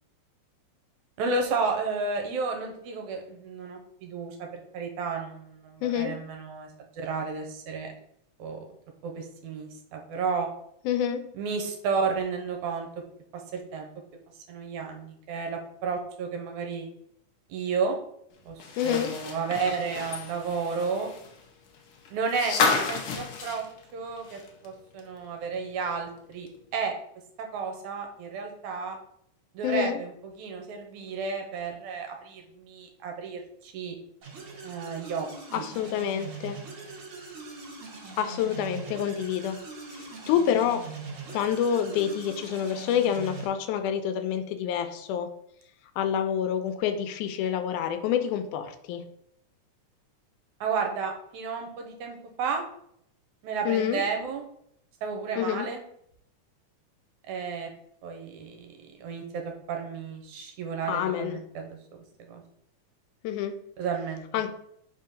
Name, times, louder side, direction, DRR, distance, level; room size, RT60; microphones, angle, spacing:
voice 1, 1.2-7.9 8.4-8.6 9.0-10.5 11.3-12.9 13.3-13.9 14.5-16.9 17.5-18.0 18.5-21.1 22.1-23.7 23.9-26.5 26.7-26.9 27.4-29.0 29.5-34.0 34.6-35.3 35.5-35.7 41.9-42.1 50.6-52.6 53.4-54.4 55.0-55.8 57.3-57.7 58.0-61.8 62.2-62.4 63.8-64.3, right 5 dB, 80° right, 3 dB, 2.2 m, -32 dB
voice 2, 5.8-6.2 10.9-11.3 18.8-19.2 29.6-30.0 35.5-36.6 38.2-39.6 39.9-40.9 41.3-45.3 46.0-49.0 53.7-54.0 55.4-55.7 60.9-61.4 63.2-63.6 64.3-64.5, left 9 dB, 90° left, 9 dB, 2.1 m, -27 dB
sound 1, 18.6-24.7 25.0-25.1 26.5-26.6, left 4 dB, 70° left, 1.3 m, -31 dB
sound 2, 34.2-43.5, right 3 dB, 55° right, 1.9 m, -41 dB
4.9 x 3.7 x 5.5 m, 0.72 s
omnidirectional pair, 3.5 m